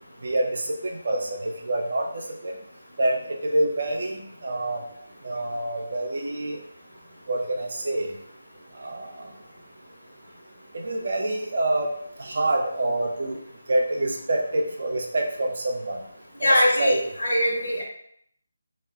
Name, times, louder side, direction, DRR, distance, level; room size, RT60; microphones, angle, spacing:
voice 1, 0.2-2.5 3.0-4.8 5.2-6.6 7.3-8.1 8.8-9.3 10.7-11.9 12.2-13.4 13.7-16.0 16.4-17.0, right 1 dB, 50° right, 1 dB, 0.4 m, -26 dB
voice 2, 16.4-17.8, left 1 dB, 60° left, -3 dB, 0.9 m, -22 dB
2.2 x 2.0 x 3.5 m, 0.68 s
figure-of-eight pair, 155°, 0 cm